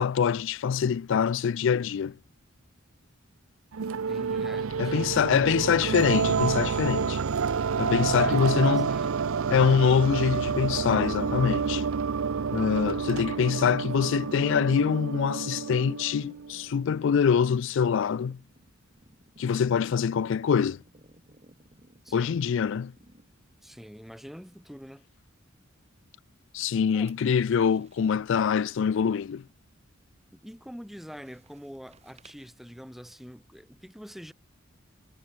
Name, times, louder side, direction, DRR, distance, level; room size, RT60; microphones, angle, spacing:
voice 1, 0.0-2.2 4.8-7.2 7.8-8.9 9.5-11.9 12.5-18.4 19.4-20.8 22.1-22.9 26.5-29.4, left 7 dB, 65° left, 0.4 m, -24 dB
sound 1, 3.7-16.7, right 5 dB, 85° right, 0.6 m, -29 dB
voice 2, 3.9-5.2 7.8-9.1 22.0-22.4 23.6-25.1 26.9-27.1 30.3-34.3, equal, ahead, 2.9 m, -45 dB
sound 2, 15.5-23.6 24.0-24.3 26.6-28.1 30.8-32.5, right 1 dB, 30° right, 2.6 m, -57 dB
head